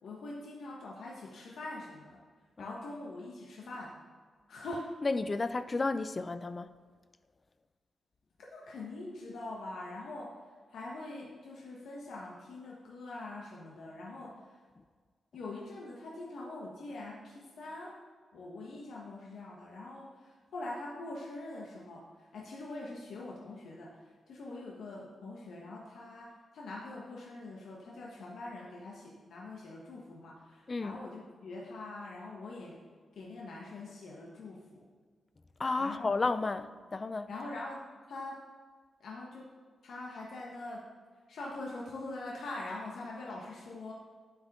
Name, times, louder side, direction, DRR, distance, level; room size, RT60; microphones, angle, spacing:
voice 1, 0.0-2.2 2.6-3.9 4.5-4.9 8.4-10.4 10.7-14.6 15.3-18.0 18.3-32.8 33.1-34.8 35.8-36.2 37.3-38.4 39.0-39.5 39.8-40.9 41.3-43.9, left 2 dB, 75° left, 1.3 m, -43 dB
voice 2, 5.0-6.7 30.7-31.0 35.6-37.3, left 3 dB, 25° left, 0.3 m, -32 dB
9.0 x 8.1 x 3.7 m
wide cardioid pair, 165°, 0 cm